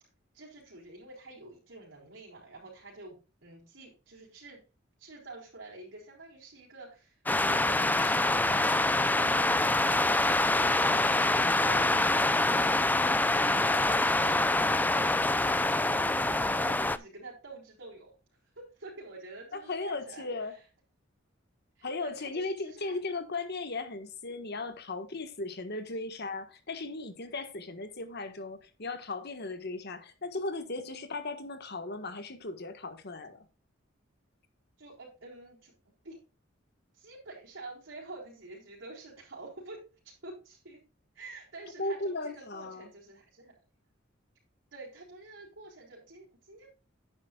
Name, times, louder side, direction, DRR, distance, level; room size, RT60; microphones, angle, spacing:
voice 1, 0.3-4.6 5.0-8.7 11.2-12.0 13.4-14.4 15.4-18.2 18.5-20.6 21.8-22.9 34.8-36.2 36.9-40.8 41.1-43.6 44.7-46.7, right 2 dB, 65° right, 4.6 m, -48 dB
sound 1, 7.3-17.0, left 2 dB, 10° left, 0.5 m, -25 dB
voice 2, 19.5-20.5 21.8-33.4 41.8-42.9, left 3 dB, 55° left, 1.5 m, -37 dB
11.0 x 9.7 x 2.4 m
head